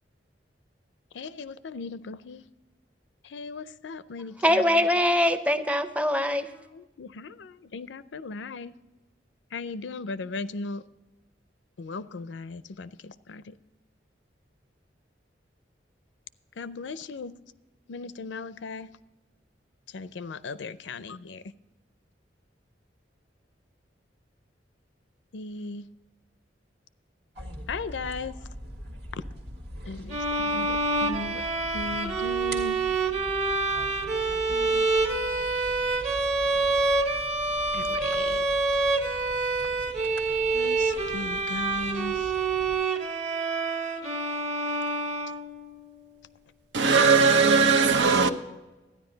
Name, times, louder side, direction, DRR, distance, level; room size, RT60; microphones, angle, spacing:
voice 1, 1.1-2.4 3.3-4.9 6.7-8.7 9.5-10.8 11.8-13.5 16.6-17.3 17.9-18.9 19.9-21.4 25.3-25.9 27.7-28.4 29.9-31.4 31.7-32.8 34.5-35.1 37.7-38.4 40.5-42.2, left 3 dB, 90° left, 0.5 m, -37 dB
voice 2, 4.4-6.5, left 1 dB, 10° right, 0.6 m, -23 dB
sound 1, 27.4-42.8, equal, 65° right, 1.7 m, -43 dB
sound 2, 30.1-45.8, right 3 dB, 35° right, 1.4 m, -27 dB
voice 3, 46.7-48.3, right 5 dB, 90° right, 0.8 m, -19 dB
12.5 x 10.0 x 3.9 m
head